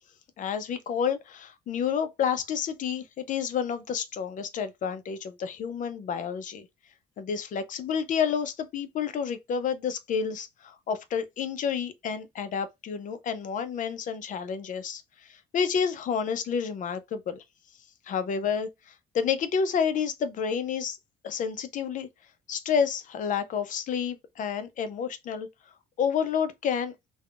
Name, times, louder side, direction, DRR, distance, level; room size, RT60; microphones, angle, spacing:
voice 1, 0.4-6.7 7.2-17.4 18.1-21.0 21.2-22.1 22.5-25.5 26.0-26.9, left 7 dB, 50° left, 0.6 m, -30 dB
3.4 x 2.2 x 2.3 m
cardioid pair, 110°, 17 cm